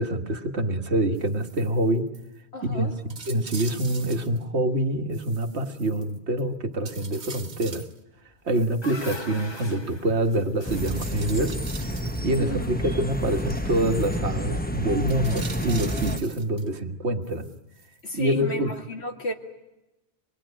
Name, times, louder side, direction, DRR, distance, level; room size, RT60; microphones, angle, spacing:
voice 1, 0.0-2.1 2.6-7.9 8.5-11.6 11.8-17.5 18.1-18.7, right 1 dB, 85° right, 6 dB, 1.8 m, -26 dB
sound 1, 1.1-1.8 2.1-2.3 2.6-2.7 3.1-4.4 5.1-6.4 6.8-8.0 8.5-9.7 10.7-12.4 13.1-14.2 15.0-16.7 17.2-18.2 18.7-18.8, right 4 dB, 45° right, 1.2 m, -43 dB
voice 2, 2.5-2.9 12.4-12.7 18.0-19.3, left 2 dB, 75° left, 4 dB, 2.6 m, -32 dB
sound 2, 8.3-12.6, left 3 dB, 25° left, 1.4 m, -43 dB
sound 3, 10.7-16.2, equal, 10° left, 1.0 m, -29 dB
26.0 x 21.5 x 10.0 m, 0.98 s
omnidirectional pair, 1.1 m